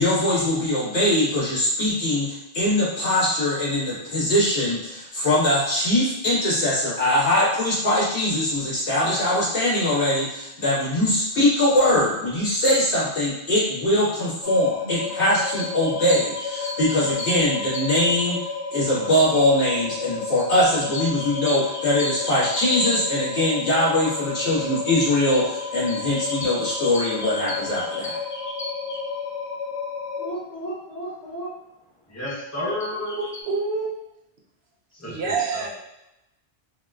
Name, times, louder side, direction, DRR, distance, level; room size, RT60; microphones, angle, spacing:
voice 1, 0.0-18.4 18.7-28.1, left 1 dB, 80° left, -9 dB, 1.7 m, -22 dB
sound 1, 14.4-30.3, left 5 dB, 65° left, 0.8 m, -32 dB
sound 2, 15.0-18.2 20.4-23.5 25.3-29.1 32.3-33.4, left 2 dB, 45° left, 0.4 m, -37 dB
voice 2, 30.2-31.5 32.1-33.2 34.9-35.7, left 1 dB, 15° left, -6 dB, 0.9 m, -32 dB
voice 3, 32.9-33.9 35.0-35.7, right 4 dB, 70° right, -1 dB, 0.9 m, -27 dB
4.6 x 2.2 x 2.4 m, 0.88 s
omnidirectional pair, 1.1 m